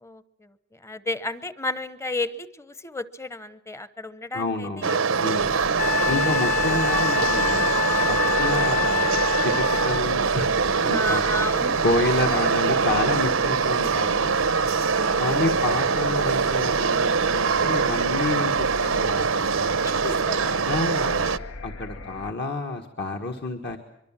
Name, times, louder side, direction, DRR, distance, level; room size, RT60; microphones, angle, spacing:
voice 1, 0.0-5.0 10.9-11.8 14.9-15.3 19.8-20.6, left 2 dB, 15° left, 14 dB, 0.9 m, -33 dB
voice 2, 4.3-5.6 6.1-7.7 8.1-9.0 9.4-10.5 10.8-11.2 11.8-14.4 15.2-19.4 20.7-21.4 21.6-23.8, left 2 dB, 55° left, 4 dB, 1.7 m, -29 dB
sound 1, 4.8-21.4, right 5 dB, 90° right, 0.9 m, -23 dB
sound 2, 5.4-22.3, left 2 dB, 75° left, 1.1 m, -40 dB
Wind instrument woodwind instrument, 5.8-10.0 12.7-12.8, left 11 dB, 35° left, 1.7 m, -26 dB
24.0 x 23.5 x 7.5 m, 0.79 s
head